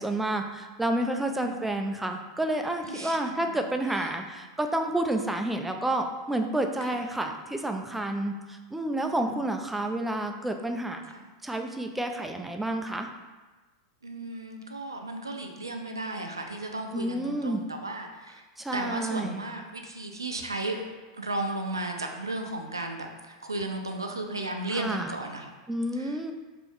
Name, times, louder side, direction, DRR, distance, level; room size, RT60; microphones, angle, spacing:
voice 1, 0.0-11.0 11.4-13.1 16.9-17.6 18.6-19.4 24.7-25.1 25.7-26.3, right 1 dB, 5° right, 5 dB, 0.3 m, -30 dB
voice 2, 1.0-1.5 2.8-3.3 6.9-7.0 9.0-9.4 11.1-11.2 14.0-18.4 18.7-20.9 21.2-25.5 25.9-26.3, right 2 dB, 90° right, 3 dB, 0.4 m, -35 dB
3.1 x 2.5 x 3.5 m, 1.2 s
figure-of-eight pair, 90°, 2 cm